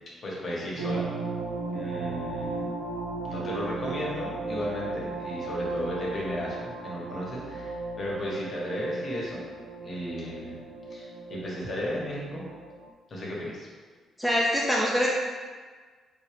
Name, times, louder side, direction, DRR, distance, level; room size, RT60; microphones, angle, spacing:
voice 1, 0.2-1.1 1.7-2.7 3.2-9.5 9.8-10.6 10.9-12.5 13.1-13.7, equal, 45° left, -4 dB, 1.1 m, -34 dB
sound 1, 0.8-12.9, right 3 dB, 90° right, 0.3 m, -35 dB
voice 2, 14.2-15.1, equal, 5° left, -4 dB, 0.5 m, -24 dB
3.8 x 2.4 x 3.4 m, 1.5 s
cardioid pair, 90°, 0 cm